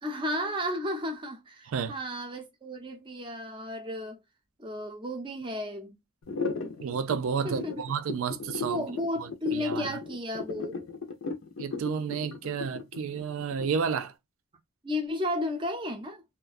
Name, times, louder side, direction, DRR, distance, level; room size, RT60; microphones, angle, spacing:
voice 1, 0.0-4.2 4.6-6.0 7.4-7.8 8.5-10.8 14.8-16.2, left 1 dB, 25° right, 0.5 m, -33 dB
sound 1, 6.2-14.0, left 4 dB, 70° left, 0.5 m, -36 dB
voice 2, 6.8-8.8 9.2-9.9 11.6-14.1, right 6 dB, 75° right, 0.4 m, -31 dB
2.4 x 2.1 x 2.4 m
head